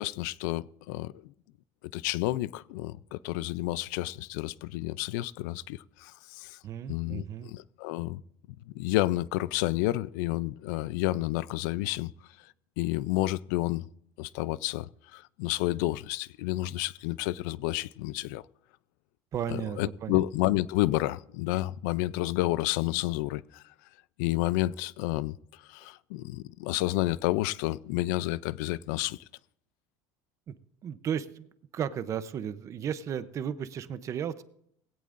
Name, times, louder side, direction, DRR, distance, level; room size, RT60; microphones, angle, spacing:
voice 1, 0.0-1.3 1.9-6.6 6.9-8.2 8.7-12.1 12.8-13.9 14.2-18.4 19.5-23.6 24.2-29.2, left 17 dB, 85° left, 0.5 m, -30 dB
voice 2, 6.6-7.5 19.3-20.2 30.5-30.6 30.8-31.5 31.7-34.4, right 8 dB, 35° right, 0.7 m, -34 dB
18.5 x 17.0 x 2.6 m
cardioid pair, 150°, 10 cm